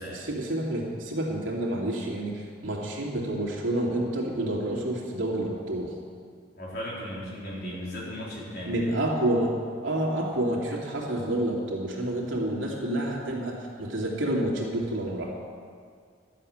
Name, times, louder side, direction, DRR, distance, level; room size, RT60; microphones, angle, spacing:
voice 1, 0.0-5.9 8.6-9.5 9.8-15.3, right 1 dB, 85° right, -3 dB, 2.8 m, -29 dB
voice 2, 6.6-8.7, equal, 55° left, -6 dB, 4.0 m, -36 dB
12.5 x 7.6 x 8.8 m, 2.1 s
head